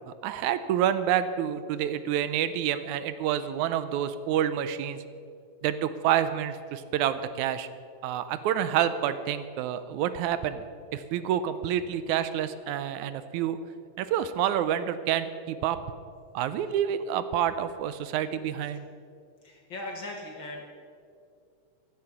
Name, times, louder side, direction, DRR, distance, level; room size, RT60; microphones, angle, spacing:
voice 1, 0.1-5.0 5.6-7.7 8.0-10.6 10.9-13.6 14.0-15.8 16.3-18.9, right 10 dB, 80° right, 12 dB, 2.0 m, -28 dB
voice 2, 19.4-20.7, left 2 dB, 55° left, 1 dB, 1.5 m, -39 dB
15.0 x 11.5 x 5.9 m, 2.4 s
omnidirectional pair, 3.4 m